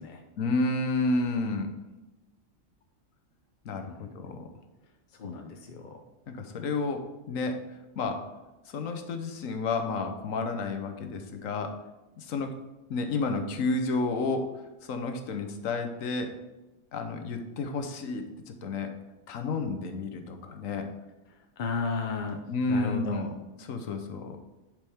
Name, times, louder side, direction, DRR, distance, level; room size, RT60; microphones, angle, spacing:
voice 1, 0.4-1.7 3.6-4.5 6.3-7.6 8.0-8.2 8.7-11.7 12.2-12.5 12.9-14.5 14.8-16.3 16.9-18.9 19.3-20.9 22.5-23.3 23.7-24.4, left 3 dB, 75° left, 6 dB, 1.3 m, -31 dB
voice 2, 3.7-4.1 5.1-6.0 21.3-22.4 22.7-23.3, left 4 dB, 50° left, 4 dB, 0.6 m, -34 dB
10.5 x 4.9 x 3.5 m, 1.1 s
omnidirectional pair, 1.4 m